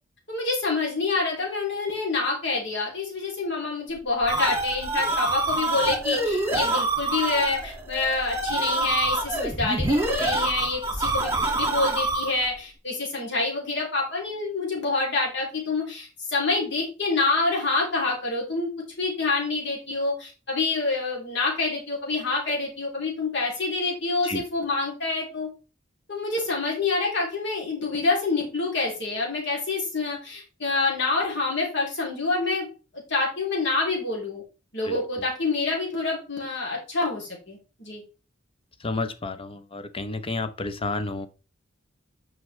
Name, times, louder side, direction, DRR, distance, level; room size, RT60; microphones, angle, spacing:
voice 1, 0.3-18.7 19.0-25.5 26.1-32.7 33.1-34.4 34.7-38.0, left 3 dB, 60° left, 2.9 m, -27 dB
sound 1, 4.0-12.5, right 2 dB, 15° right, 1.9 m, -26 dB
voice 2, 38.8-41.3, left 3 dB, 30° left, 0.7 m, -31 dB
9.4 x 5.1 x 3.2 m
head